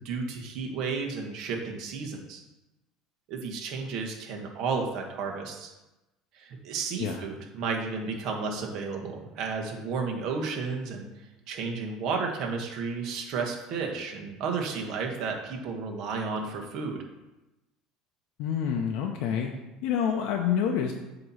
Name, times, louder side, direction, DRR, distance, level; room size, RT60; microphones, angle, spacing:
voice 1, 0.0-2.4 3.3-5.7 6.3-11.0 11.5-17.0, right 4 dB, 55° right, 1 dB, 1.3 m, -32 dB
voice 2, 18.4-19.5 19.8-20.9, left 8 dB, 70° left, 2 dB, 0.7 m, -27 dB
7.9 x 3.0 x 5.5 m, 1.0 s
cardioid pair, 135°, 0 cm